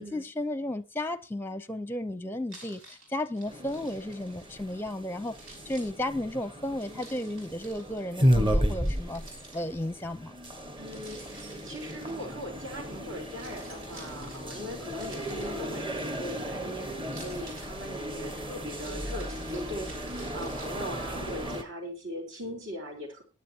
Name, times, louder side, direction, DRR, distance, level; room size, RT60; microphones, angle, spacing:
voice 1, 0.0-5.3 5.7-9.2 9.5-10.4, left 1 dB, 10° left, 0.6 m, -34 dB
Keys jangling, 2.5-4.9 5.3-8.0 8.8-10.0 10.9-12.7 13.2-16.5 17.0-21.6, right 2 dB, 85° right, 6.6 m, -51 dB
sound 1, 3.5-21.6, equal, 25° right, 1.3 m, -33 dB
voice 2, 10.8-23.2, equal, 65° right, 4.3 m, -40 dB
22.0 x 9.6 x 2.9 m
head